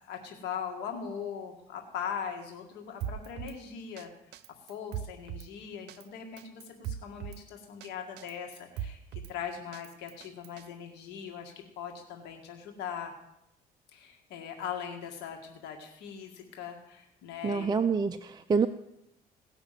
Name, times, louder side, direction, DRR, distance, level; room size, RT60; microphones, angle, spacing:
voice 1, 0.0-4.4 4.7-13.1 13.9-17.7, left 7 dB, 90° left, 3 dB, 2.0 m, -40 dB
Drum kit, 3.0-3.6 4.0-4.1 4.3-5.5 5.9-6.1 6.4-7.4 7.8-7.9 8.2-9.3 9.7-10.7, right 9 dB, 80° right, 0.7 m, -39 dB
voice 2, 17.4-18.7, right 5 dB, 25° right, 7 dB, 0.6 m, -27 dB
18.0 x 6.1 x 7.5 m, 0.81 s
cardioid pair, 110°, 17 cm